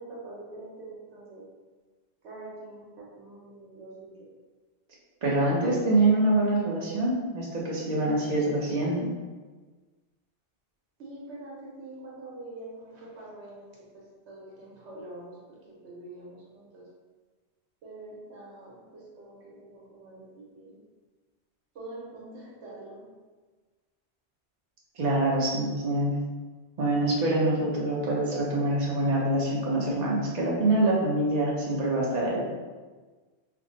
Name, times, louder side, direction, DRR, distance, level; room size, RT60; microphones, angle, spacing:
voice 1, 0.0-1.5 2.2-4.3 11.0-16.9 17.8-20.8 21.7-23.1, right 2 dB, 75° right, -4 dB, 1.2 m, -45 dB
voice 2, 5.2-9.1 25.0-26.2 26.8-32.4, right 2 dB, 40° right, -3 dB, 0.8 m, -25 dB
3.4 x 2.0 x 3.9 m, 1.4 s
omnidirectional pair, 1.2 m